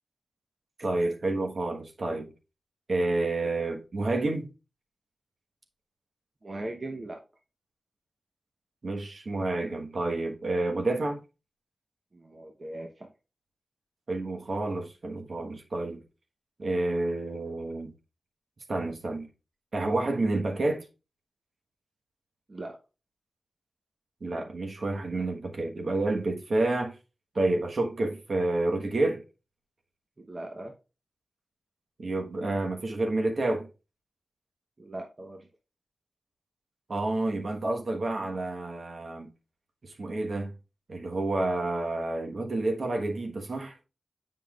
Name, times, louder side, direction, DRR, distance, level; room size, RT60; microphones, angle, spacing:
voice 1, 0.8-2.3 2.9-4.5 8.8-11.2 14.1-16.0 16.6-17.9 18.7-19.3 19.7-20.8 24.2-26.9 27.3-29.2 32.0-33.7 36.9-39.3 39.8-40.6 40.9-43.7, right 2 dB, 60° right, 1.2 m, -29 dB
voice 2, 6.4-7.2 12.1-13.1 22.5-22.8 30.2-30.7 34.8-35.5, right 2 dB, 40° right, 0.9 m, -39 dB
7.4 x 5.4 x 2.4 m
cardioid pair, 55°, 0 cm